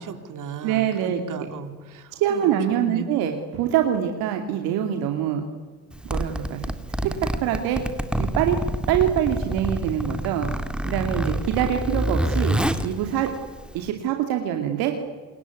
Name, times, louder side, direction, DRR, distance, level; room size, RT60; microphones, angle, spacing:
voice 1, 0.0-3.1, right 6 dB, 55° right, 8 dB, 3.6 m, -36 dB
voice 2, 0.6-1.2 2.1-5.4 6.0-6.6 7.4-7.8 8.2-8.6 8.9-10.5 10.8-13.3 13.7-14.9, right 10 dB, 75° right, 4 dB, 2.6 m, -24 dB
Zipper (clothing), 5.9-13.9, right 1 dB, 5° right, 2.4 m, -27 dB
28.5 x 21.0 x 9.5 m, 1.4 s
hypercardioid pair, 70°, 36 cm